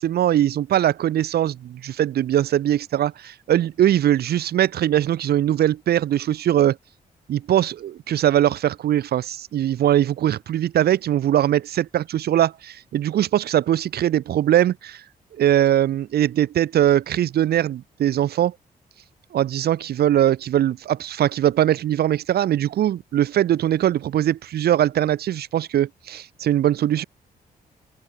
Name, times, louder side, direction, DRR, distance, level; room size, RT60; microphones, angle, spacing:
voice 1, 0.0-6.8 7.3-15.0 15.4-18.5 19.3-27.0, right 11 dB, 85° right, 2.8 m, -21 dB
open air
wide cardioid pair, 170°, 16 cm